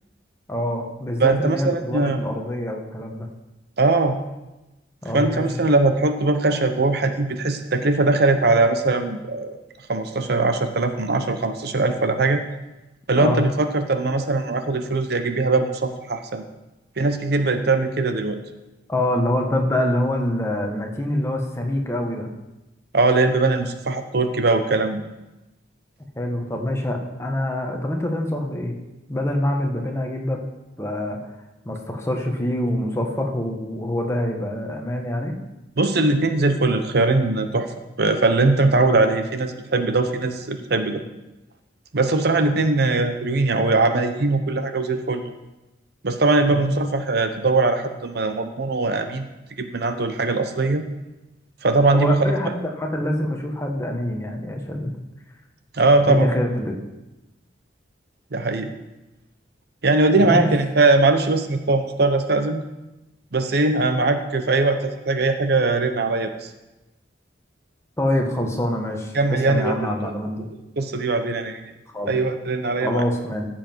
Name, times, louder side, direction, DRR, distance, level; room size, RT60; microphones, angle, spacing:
voice 1, 0.5-3.3 5.0-5.5 13.2-13.4 18.9-22.3 26.2-28.7 29.1-30.5 30.8-31.2 31.6-35.3 46.5-46.6 51.9-54.9 56.1-56.7 60.2-60.6 68.0-70.5 71.9-72.1 72.8-73.5, left 1 dB, 15° left, 2 dB, 1.4 m, -25 dB
voice 2, 1.2-2.2 3.8-4.2 5.1-9.6 9.9-12.4 13.1-16.4 17.0-18.4 22.9-25.0 35.8-37.7 38.0-41.0 41.9-45.2 46.0-49.3 49.6-50.8 51.6-52.2 55.7-56.3 58.3-58.7 59.8-62.6 63.3-66.5 69.1-70.1 70.8-71.6 72.1-73.0, right 3 dB, 60° right, 8 dB, 0.8 m, -20 dB
15.0 x 7.5 x 4.6 m, 1.0 s
head